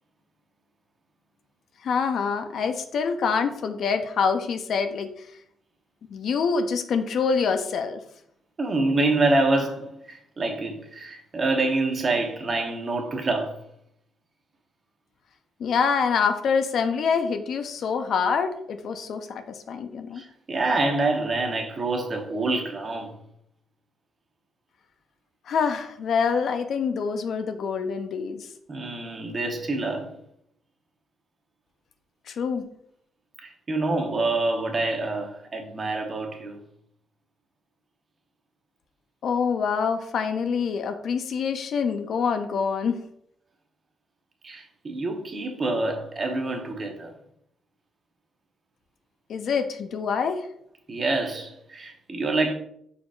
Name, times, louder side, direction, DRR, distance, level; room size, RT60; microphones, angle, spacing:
voice 1, 1.8-5.3 6.1-8.0 15.6-20.2 25.5-28.5 32.3-32.6 39.2-43.0 49.3-50.5, left 6 dB, 65° left, 0.4 m, -26 dB
voice 2, 8.6-13.6 20.1-23.2 28.7-30.1 32.6-32.7 33.4-36.6 44.4-47.1 50.9-52.5, right 2 dB, 35° right, 0.9 m, -26 dB
4.7 x 4.2 x 2.4 m
cardioid pair, 90°, 0 cm